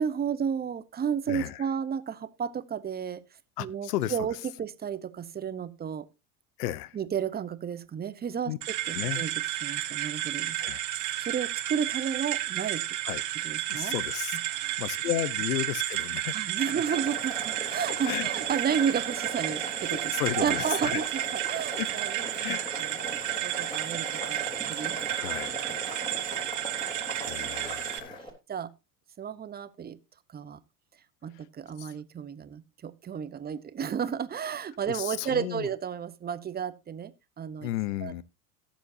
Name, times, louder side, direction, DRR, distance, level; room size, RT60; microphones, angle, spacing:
voice 1, 0.0-3.2 3.6-6.1 6.9-9.3 9.6-10.6 10.9-12.9 13.4-13.9 14.5-14.8 16.3-22.5 22.8-24.9 25.7-25.8 28.5-28.7 29.2-30.0 30.3-30.6 31.2-37.1 37.4-37.7 38.0-38.1, right 7 dB, 20° right, 0.8 m, -32 dB
voice 2, 1.3-1.6 3.6-4.3 6.6-7.0 8.5-8.6 8.9-9.3 10.6-10.8 13.0-13.2 13.7-14.4 14.6-16.8 18.1-18.3 20.1-21.0 21.8-21.9 22.4-22.6 23.2-23.5 25.1-25.6 27.2-28.2 31.8-31.9 34.9-35.7 37.6-38.2, left 14 dB, 75° left, 0.9 m, -33 dB
sound 1, 8.6-28.0, right 13 dB, 40° right, 1.4 m, -32 dB
Boiling, 16.8-28.3, right 1 dB, 10° left, 3.5 m, -40 dB
17.5 x 7.2 x 2.7 m
hypercardioid pair, 90°, 47 cm